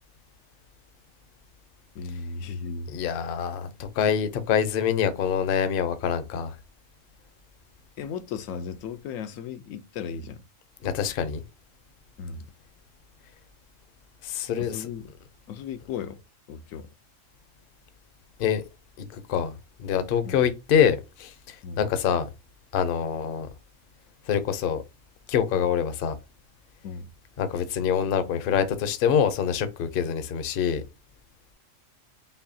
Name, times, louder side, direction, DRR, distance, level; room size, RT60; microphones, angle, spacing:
voice 1, 1.9-2.9 8.0-10.4 12.2-12.5 14.6-15.1 15.5-16.2 16.5-16.9 20.2-20.5 21.6-21.8 25.5-25.7 26.8-27.1, left 6 dB, 85° left, 1.0 m, -36 dB
voice 2, 2.9-6.5 10.8-11.4 14.2-14.9 18.4-18.6 19.0-19.5 19.8-22.3 22.7-23.5 24.3-24.8 25.3-26.1 27.4-30.8, left 8 dB, 55° left, 0.7 m, -25 dB
5.4 x 2.3 x 2.7 m
omnidirectional pair, 1.3 m